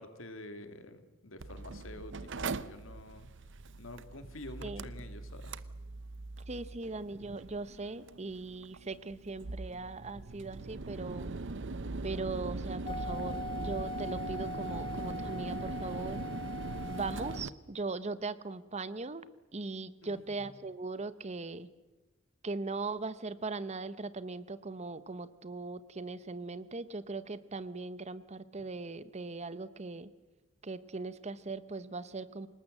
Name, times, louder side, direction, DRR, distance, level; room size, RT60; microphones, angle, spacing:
voice 1, 0.0-3.3 3.7-5.6 20.0-20.5, left 1 dB, 75° left, 9 dB, 2.1 m, -48 dB
Mechanical fan, 1.4-17.5, right 3 dB, 65° right, 0.8 m, -41 dB
voice 2, 6.5-11.3 12.0-16.2 16.9-19.3 19.5-21.7 22.4-30.1 30.6-32.5, right 3 dB, 35° right, 16 dB, 0.9 m, -39 dB
sound 1, 12.8-17.4, left 1 dB, 30° left, 1.2 m, -41 dB
28.0 x 19.0 x 7.7 m, 1.1 s
head